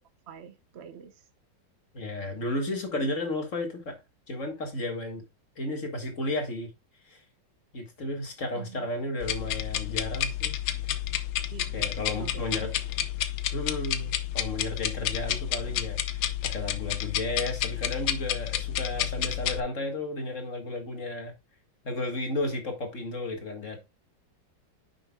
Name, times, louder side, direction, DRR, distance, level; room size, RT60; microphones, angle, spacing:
voice 1, 0.3-1.3 8.5-8.9 11.5-12.7, right 8 dB, 55° right, 0.7 m, -46 dB
voice 2, 1.9-4.0 4.3-5.2 5.6-6.7 7.0-7.2 7.7-10.6 10.9-11.0 11.7-12.7 13.5-21.3 21.8-23.8, left 2 dB, 45° left, 2.0 m, -33 dB
sound 1, 9.2-19.6, left 12 dB, 85° left, 1.5 m, -30 dB
10.0 x 6.4 x 2.3 m
omnidirectional pair, 2.0 m